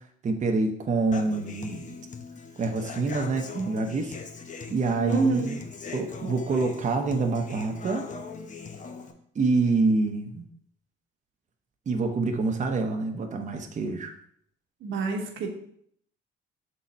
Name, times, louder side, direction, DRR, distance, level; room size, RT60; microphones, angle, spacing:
voice 1, 0.0-2.0 2.6-4.2 4.7-5.6 5.9-8.1 9.3-10.5 11.9-14.1, right 3 dB, 35° right, 4 dB, 0.8 m, -26 dB
Human voice / Acoustic guitar, 1.1-9.1, left 4 dB, 40° left, 0.8 m, -40 dB
voice 2, 5.0-5.5 14.8-15.5, right 4 dB, 80° right, 3 dB, 1.2 m, -27 dB
6.5 x 4.0 x 4.1 m, 0.67 s
cardioid pair, 90°, 20 cm